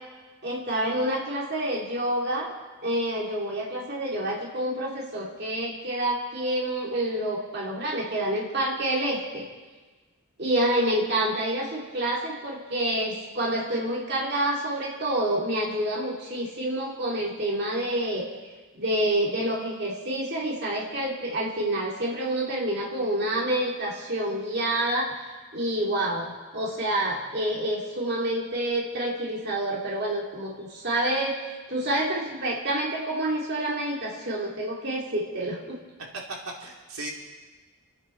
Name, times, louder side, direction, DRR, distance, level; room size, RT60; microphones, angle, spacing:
voice 1, 0.4-2.5 2.8-9.5 10.4-18.3 18.7-25.1 25.5-35.8, right 1 dB, 50° right, -3 dB, 2.7 m, -28 dB
voice 2, 36.1-37.1, right 2 dB, 85° right, -1 dB, 2.6 m, -36 dB
28.5 x 9.9 x 4.5 m, 1.3 s
head